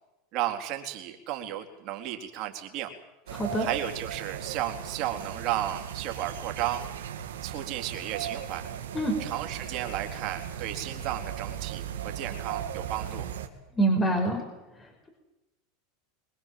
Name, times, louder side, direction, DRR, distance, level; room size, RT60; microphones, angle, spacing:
voice 1, 0.3-2.9 3.6-6.8 7.4-8.7 9.2-13.3, right 12 dB, 50° right, 3 dB, 3.9 m, -33 dB
voice 2, 3.3-3.7 8.9-9.2 13.8-14.4, right 2 dB, 20° left, 3 dB, 5.2 m, -25 dB
sound 1, 3.3-13.5, right 9 dB, 85° right, 2.5 m, -37 dB
24.5 x 21.0 x 7.7 m, 1.0 s
hypercardioid pair, 110°, 0 cm